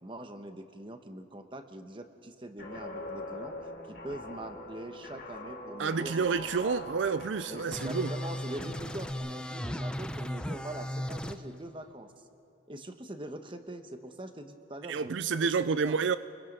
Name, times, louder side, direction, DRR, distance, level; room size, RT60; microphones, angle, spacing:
voice 1, 0.0-3.5 3.9-6.2 6.6-6.8 7.5-12.1 12.7-16.0, right 1 dB, 25° right, 1.1 m, -43 dB
Guitar, 2.6-9.1, left 2 dB, 65° left, 3.4 m, -43 dB
voice 2, 5.8-8.1 14.9-16.2, right 5 dB, 80° right, 0.4 m, -29 dB
sound 1, 7.7-11.4, left 1 dB, 5° left, 0.6 m, -36 dB
29.0 x 22.0 x 5.4 m
head